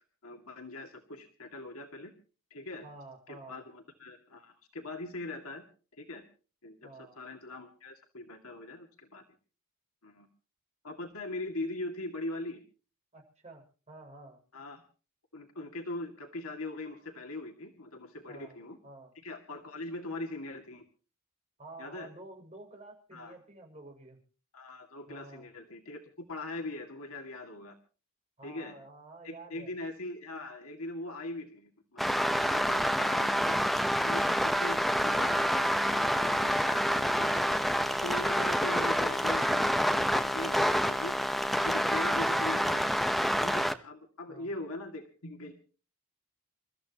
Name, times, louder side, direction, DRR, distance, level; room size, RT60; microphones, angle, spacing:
voice 1, 0.2-2.1 2.5-2.9 3.3-5.6 6.0-6.2 6.6-6.9 7.2-9.2 10.0-10.3 10.8-12.6 14.5-14.8 15.3-18.8 19.2-20.8 21.8-22.1 23.1-23.3 24.5-26.0 26.3-27.8 28.4-28.7 29.2-33.6 34.1-37.6 38.0-41.3 41.6-45.5, left 2 dB, 80° left, 3 dB, 2.3 m, -41 dB
voice 2, 2.8-3.7 6.8-7.2 13.1-14.4 18.3-18.6 18.8-19.1 21.6-24.2 25.1-25.5 28.4-29.7 41.9-42.5 44.3-44.5, right 2 dB, 30° right, 1 dB, 6.5 m, -50 dB
sound 1, 32.0-43.7, equal, ahead, 1.0 m, -27 dB
28.5 x 14.0 x 3.0 m, 0.38 s
head